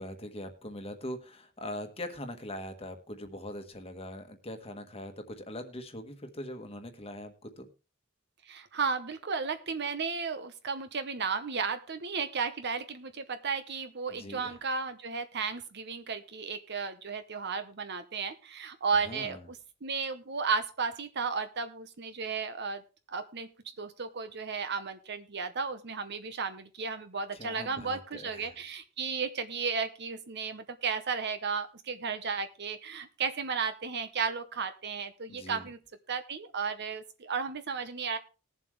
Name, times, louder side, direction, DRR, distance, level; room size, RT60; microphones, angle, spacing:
voice 1, 0.0-7.7 14.1-14.6 19.0-19.4 27.3-28.6 35.3-35.7, left 1 dB, 30° left, 7 dB, 1.3 m, -42 dB
voice 2, 8.5-22.8 23.1-23.5 23.8-35.8 36.1-38.2, right 5 dB, 55° right, 10 dB, 0.9 m, -34 dB
19.5 x 7.5 x 3.2 m, 0.32 s
head